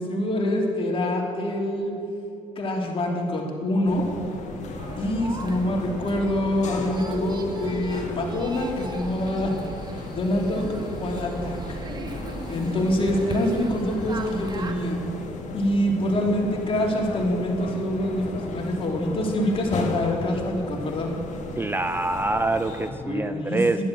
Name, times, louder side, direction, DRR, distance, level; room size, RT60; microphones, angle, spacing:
voice 1, 0.0-1.9 2.5-4.1 5.0-9.5 9.8-10.7 11.0-11.8 12.5-15.0 15.5-21.1 23.0-23.8, left 1 dB, 40° left, -1 dB, 3.1 m, -25 dB
sound 1, 3.9-22.9, left 3 dB, 60° left, 1.9 m, -36 dB
Playground with childrens, 4.8-14.7, right 3 dB, 30° right, 1.3 m, -37 dB
voice 2, 21.6-23.8, right 2 dB, 15° right, 10 dB, 0.5 m, -25 dB
11.5 x 11.0 x 7.5 m, 2.6 s
supercardioid pair, 80°, 14 cm